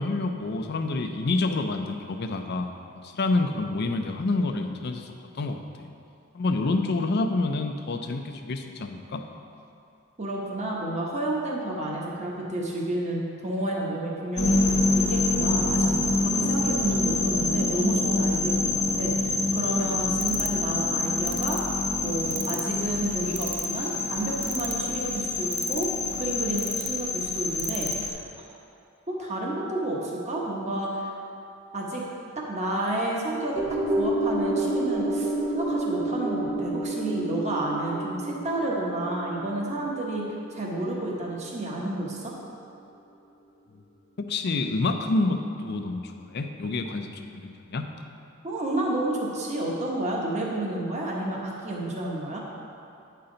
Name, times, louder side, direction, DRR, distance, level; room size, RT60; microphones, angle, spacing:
voice 1, 0.0-2.7 3.0-5.6 6.3-9.2 44.3-47.9, left 2 dB, 50° left, 6 dB, 0.5 m, -28 dB
voice 2, 10.2-14.6 15.0-21.6 22.0-28.4 29.1-31.1 31.7-32.1 32.5-33.7 34.0-42.3 48.4-52.4, right 1 dB, 35° right, -3 dB, 1.0 m, -30 dB
sound 1, 14.4-28.1, left 2 dB, 35° left, 0.9 m, -26 dB
sound 2, 20.2-20.6 21.3-21.6 22.3-22.7 23.4-23.8 24.4-24.9 25.5-26.0 26.6-26.9 27.6-27.9, right 14 dB, 80° right, 0.4 m, -34 dB
sound 3, 33.6-42.0 42.3-42.4, right 1 dB, 10° right, 0.6 m, -29 dB
9.0 x 5.7 x 3.8 m, 2.6 s
head